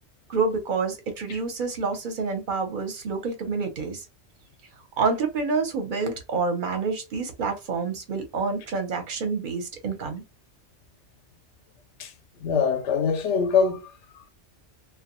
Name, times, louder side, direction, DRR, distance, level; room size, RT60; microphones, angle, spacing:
voice 1, 0.3-4.0 5.0-10.2, right 4 dB, 50° right, 0.9 m, -28 dB
voice 2, 12.4-14.3, left 6 dB, 90° left, 0.9 m, -24 dB
2.3 x 2.2 x 2.9 m
omnidirectional pair, 1.1 m